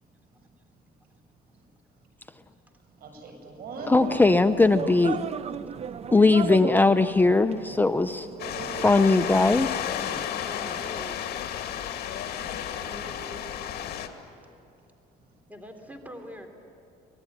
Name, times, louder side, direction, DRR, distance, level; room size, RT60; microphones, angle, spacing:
voice 1, 3.0-4.0 12.5-13.6, right 2 dB, 65° right, 4 dB, 7.6 m, -41 dB
sound 1, 3.8-9.7, right 7 dB, 40° right, 0.8 m, -36 dB
voice 2, 3.9-5.2 6.1-8.3 8.8-9.7, left 3 dB, 10° left, 9 dB, 0.7 m, -20 dB
sound 2, 8.4-14.1, left 9 dB, 70° left, 2.3 m, -32 dB
voice 3, 10.4-11.2 15.5-16.5, equal, 10° right, 5 dB, 3.3 m, -42 dB
25.5 x 20.0 x 10.0 m, 2.8 s
cardioid pair, 110°, 17 cm